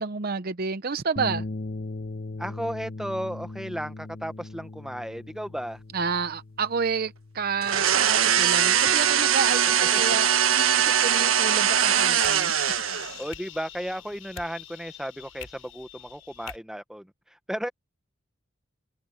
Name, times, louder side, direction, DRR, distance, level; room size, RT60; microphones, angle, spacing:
voice 1, 0.0-1.4 5.9-12.5, right 5 dB, 45° right, 0.7 m, -30 dB
sound 1, 1.2-9.6, left 2 dB, 50° left, 1.1 m, -39 dB
voice 2, 2.4-5.8 9.8-9.9 13.2-17.1 17.5-17.7, equal, 5° right, 1.2 m, -34 dB
Empty blender, 7.6-13.2, right 9 dB, 80° right, 1.4 m, -22 dB
sound 2, 11.5-16.6, left 10 dB, 80° left, 7.6 m, -44 dB
head